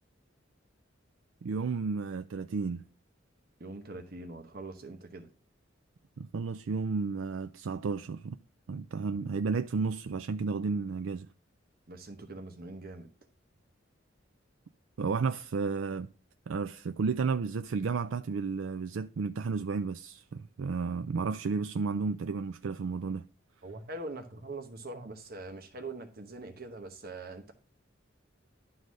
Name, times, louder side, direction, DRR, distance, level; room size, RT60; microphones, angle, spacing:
voice 1, 1.4-2.8 6.2-8.4 8.7-11.3 15.0-16.1 16.5-23.2, right 4 dB, 85° right, 0.4 m, -32 dB
voice 2, 3.6-5.3 11.9-13.1 23.6-27.5, right 2 dB, 50° right, 1.0 m, -43 dB
11.0 x 4.0 x 6.2 m
head